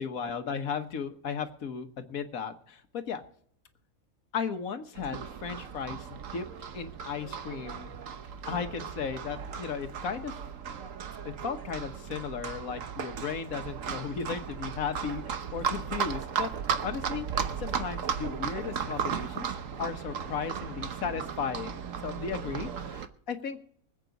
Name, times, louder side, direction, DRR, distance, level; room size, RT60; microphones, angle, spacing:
voice 1, 0.0-3.2 4.3-6.5 6.7-7.9 8.5-10.3 11.2-16.5 16.8-23.6, left 6 dB, 80° left, 8 dB, 1.6 m, -35 dB
Livestock farm animals working animals, 4.9-23.1, right 7 dB, 70° right, 1.3 m, -36 dB
24.5 x 8.3 x 4.0 m, 0.62 s
omnidirectional pair, 1.5 m